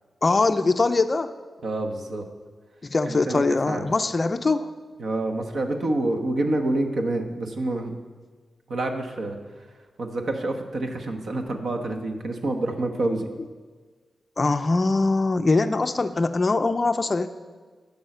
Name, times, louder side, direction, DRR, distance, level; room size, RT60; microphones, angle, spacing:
voice 1, 0.2-1.3 2.9-4.7 14.4-17.3, left 3 dB, 30° left, 10 dB, 0.4 m, -22 dB
voice 2, 1.6-2.3 3.1-3.9 5.0-7.9 8.7-9.7 10.0-13.3, right 2 dB, 60° right, 4 dB, 1.2 m, -27 dB
11.5 x 5.5 x 7.8 m, 1.4 s
wide cardioid pair, 160°, 0 cm